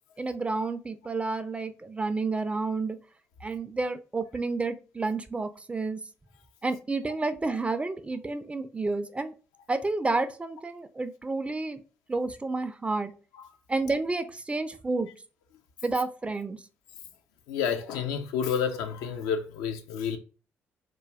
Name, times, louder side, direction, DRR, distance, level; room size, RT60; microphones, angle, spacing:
voice 1, 0.2-3.0 3.4-6.0 6.6-9.3 9.7-11.8 12.1-13.1 13.7-15.1 15.8-16.6, right 3 dB, 20° right, 0.3 m, -30 dB
voice 2, 17.5-20.2, left 7 dB, 65° left, 0.3 m, -29 dB
2.3 x 2.2 x 3.1 m
figure-of-eight pair, 40°, 7 cm